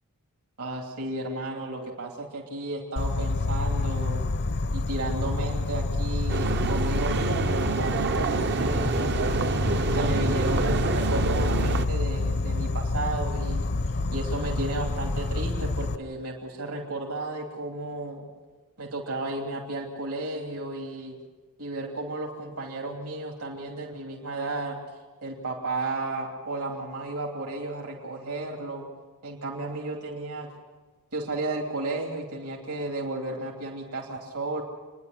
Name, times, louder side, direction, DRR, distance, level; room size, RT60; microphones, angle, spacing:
voice 1, 0.6-4.2 4.7-9.1 9.9-13.7 14.1-18.3 18.8-21.2 21.6-24.8 25.2-28.9 29.2-30.5 31.1-34.6, right 2 dB, 75° right, -1 dB, 3.1 m, -33 dB
Insect, 3.0-16.0, left 2 dB, 50° left, 0.7 m, -28 dB
sound 1, 6.3-11.9, right 4 dB, 50° right, 0.7 m, -27 dB
27.5 x 11.0 x 9.6 m, 1.3 s
head